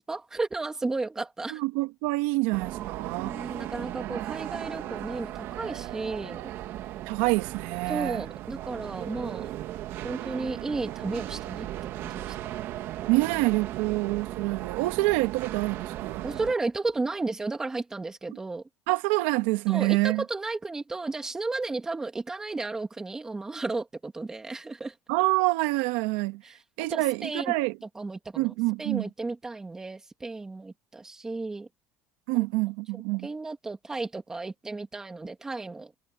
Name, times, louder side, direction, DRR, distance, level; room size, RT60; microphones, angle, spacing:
voice 1, 0.1-1.6 3.2-6.4 7.9-9.5 10.0-11.7 12.0-12.5 16.2-18.6 19.7-24.9 26.4-26.6 26.9-27.5 27.9-28.5 28.8-31.7 32.3-32.5 33.2-35.9, right 3 dB, 10° right, 2.6 m, -33 dB
voice 2, 1.5-3.4 7.1-8.2 13.1-16.2 18.9-20.2 25.1-26.4 26.8-27.8 28.4-29.1 32.3-33.3, right 21 dB, 90° right, 1.9 m, -26 dB
sound 1, 2.5-16.5, right 14 dB, 50° right, 1.5 m, -37 dB
cardioid pair, 165°, 5 cm